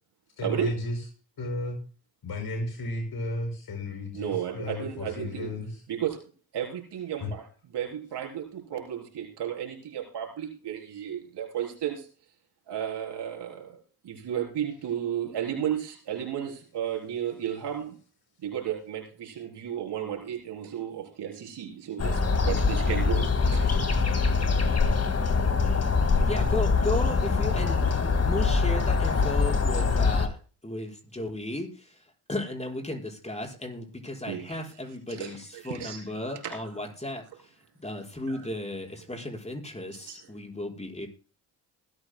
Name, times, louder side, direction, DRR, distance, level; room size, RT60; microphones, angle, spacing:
voice 1, 0.4-1.0 1.4-1.8 2.2-5.8 7.2-7.3, left 1 dB, 60° left, 4 dB, 5.7 m, -33 dB
voice 2, 4.1-5.6 5.9-6.2 6.5-7.5 7.7-12.1 12.7-18.0 18.4-23.8 24.1-24.3 34.3-34.6 35.1-36.0 36.3-36.5 38.3-38.5 40.1-40.2, right 10 dB, 70° right, 2 dB, 3.9 m, -33 dB
sound 1, 22.0-30.3, left 4 dB, 35° left, 2.0 m, -24 dB
voice 3, 26.3-30.4 30.6-32.0 32.3-41.1, left 1 dB, 15° left, -1 dB, 5.3 m, -35 dB
20.5 x 13.5 x 2.2 m, 0.37 s
supercardioid pair, 55°, 42 cm